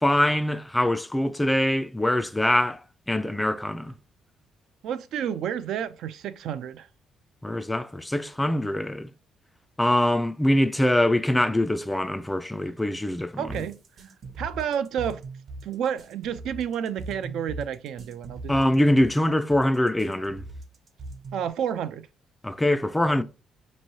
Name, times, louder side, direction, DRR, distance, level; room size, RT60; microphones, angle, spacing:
voice 1, 0.0-2.8 3.1-3.9 7.4-9.1 9.8-13.6 18.5-20.4 22.4-23.2, left 1 dB, 5° left, 0.3 m, -23 dB
voice 2, 4.8-6.9 13.4-13.8 14.4-15.2 15.6-18.6 21.3-22.1, right 8 dB, 75° right, 0.4 m, -30 dB
sound 1, 13.5-21.5, right 2 dB, 45° right, 0.8 m, -40 dB
5.3 x 3.0 x 2.7 m
cardioid pair, 140°, 0 cm